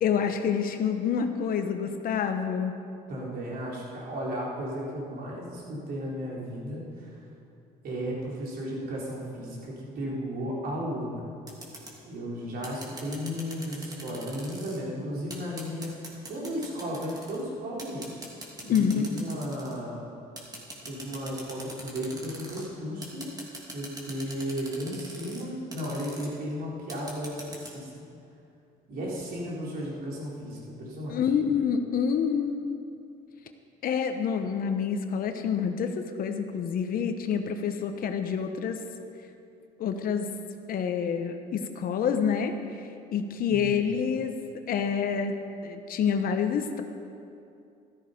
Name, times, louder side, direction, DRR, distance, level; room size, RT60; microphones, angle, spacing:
voice 1, 0.0-2.8 18.7-19.1 31.1-32.6 33.8-38.8 39.8-40.3 40.7-42.5 43.1-44.3 44.7-45.4 45.6-46.8, left 7 dB, 60° left, 7 dB, 1.0 m, -27 dB
voice 2, 3.1-7.2 7.8-11.3 12.0-15.9 16.3-18.1 18.6-20.0 20.9-23.3 23.7-27.9 28.9-31.2 43.5-43.8, equal, 60° right, -4 dB, 4.0 m, -34 dB
sound 1, 11.5-11.9 12.6-14.8 15.3-17.4 17.8-19.8 20.4-22.7 23.0-25.4 25.7-26.3 26.9-27.7, right 1 dB, 20° right, 2.7 m, -42 dB
14.0 x 13.0 x 5.2 m, 2.6 s
cardioid pair, 110°, 17 cm